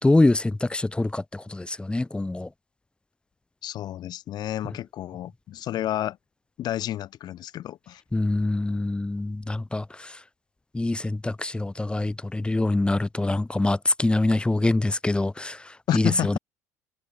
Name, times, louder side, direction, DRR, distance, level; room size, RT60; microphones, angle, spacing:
voice 1, 0.0-2.5 8.1-10.2 10.7-16.4, left 2 dB, 10° left, 2.4 m, -24 dB
voice 2, 3.6-6.2 6.6-8.0 15.9-16.4, left 12 dB, 55° left, 1.7 m, -30 dB
hypercardioid pair, 70°, 9 cm